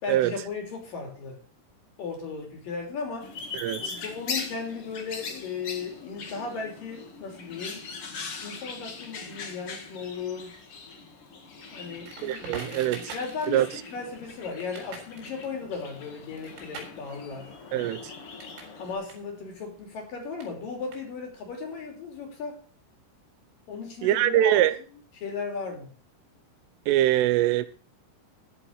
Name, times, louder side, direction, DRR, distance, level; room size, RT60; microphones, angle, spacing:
voice 1, 0.0-1.4 2.0-3.3 3.8-7.9 8.4-10.6 11.7-13.6 13.9-17.9 18.8-22.6 23.7-24.6 24.9-25.9, left 5 dB, 45° left, 4.3 m, -36 dB
sound 1, 3.2-18.9, left 5 dB, 75° left, 1.2 m, -41 dB
voice 2, 3.5-4.0 12.2-13.1 13.5-13.7 17.7-18.1 24.0-24.7 26.9-27.7, right 13 dB, 80° right, 3.3 m, -23 dB
Crackle, 12.0-18.8 19.0-21.5, right 4 dB, 65° right, 6.2 m, -45 dB
14.0 x 7.2 x 6.4 m
omnidirectional pair, 5.9 m